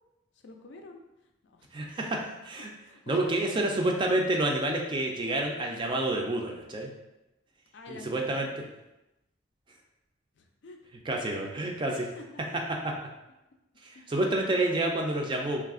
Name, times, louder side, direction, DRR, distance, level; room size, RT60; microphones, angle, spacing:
voice 1, 0.4-1.0 1.4-1.7 1.9-2.1 2.8-3.4 7.7-8.5 10.4-10.8 11.9-12.2 13.9-14.0, left 3 dB, 65° left, 3 dB, 0.4 m, -46 dB
voice 2, 1.7-2.7 3.1-6.9 7.9-8.6 11.1-12.1 12.7-12.9 13.8-15.6, right 1 dB, 25° right, 1 dB, 0.4 m, -29 dB
3.2 x 2.4 x 3.6 m, 0.96 s
head